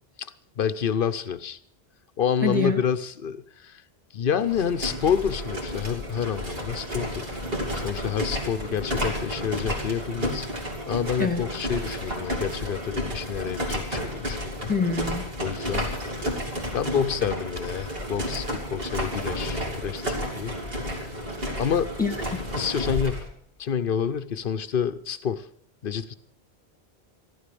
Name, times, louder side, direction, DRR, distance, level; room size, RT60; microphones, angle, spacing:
voice 1, 0.6-1.6 2.2-3.8 4.1-7.3 7.7-10.5 10.9-14.7 15.4-16.0 16.7-20.6 21.6-21.9 22.5-23.3 23.6-25.5 25.8-26.1, left 7 dB, 55° left, 14 dB, 1.0 m, -28 dB
voice 2, 2.4-2.8 11.2-11.4 14.7-15.3 22.0-22.4, left 4 dB, 10° left, 4 dB, 2.0 m, -26 dB
sound 1, 4.4-23.3, equal, 60° right, 3.1 m, -31 dB
14.5 x 12.5 x 6.9 m, 0.63 s
omnidirectional pair, 1.1 m